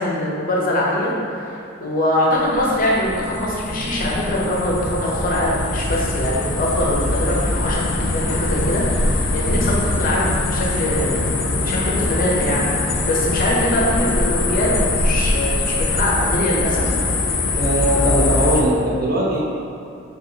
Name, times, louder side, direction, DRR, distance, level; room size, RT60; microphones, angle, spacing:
voice 1, 0.0-16.9 17.4-17.5, left 1 dB, 45° left, -4 dB, 0.6 m, -23 dB
sound 1, 2.4-18.6, left 2 dB, 85° left, 0.4 m, -22 dB
voice 2, 17.5-19.4, right 1 dB, 50° right, -4 dB, 0.6 m, -19 dB
5.0 x 2.3 x 2.7 m, 2.6 s
head